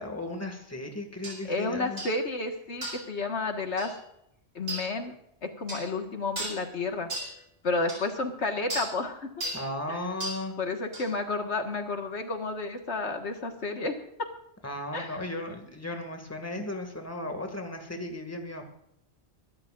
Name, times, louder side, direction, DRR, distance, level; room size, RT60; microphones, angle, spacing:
voice 1, 0.0-2.0 9.5-10.6 14.6-18.6, left 1 dB, 15° left, 4 dB, 2.1 m, -35 dB
sound 1, 1.2-1.4 2.0-2.2 2.8-3.1 3.8-3.9 4.7-4.9 5.7-5.9 6.4-6.6 7.1-7.3 7.9-8.0 8.7-8.9 9.4-9.7 10.2-10.4 10.9-11.1, right 1 dB, 60° right, 4.6 m, -35 dB
voice 2, 1.5-4.0 4.6-5.1 5.4-7.1 7.6-9.3 9.9-10.0 10.6-14.3 14.9-15.2, left 3 dB, 80° left, 5 dB, 1.9 m, -31 dB
23.5 x 13.5 x 2.5 m, 0.77 s
omnidirectional pair, 1.1 m